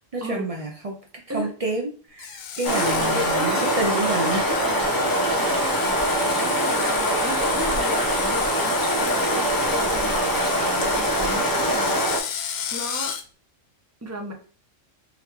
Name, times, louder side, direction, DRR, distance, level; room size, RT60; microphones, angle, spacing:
voice 1, 0.1-1.0 1.3-4.4, right 2 dB, 60° right, 1 dB, 0.3 m, -29 dB
Screech, 2.2-13.2, left 8 dB, 90° left, 1.0 m, -33 dB
sound 1, 2.6-12.2, equal, 20° left, 0.8 m, -23 dB
voice 2, 2.7-3.8 4.2-12.2 12.7-13.2 14.0-14.3, right 1 dB, 15° right, 2 dB, 0.6 m, -34 dB
3.8 x 3.4 x 3.0 m, 0.40 s
omnidirectional pair, 1.3 m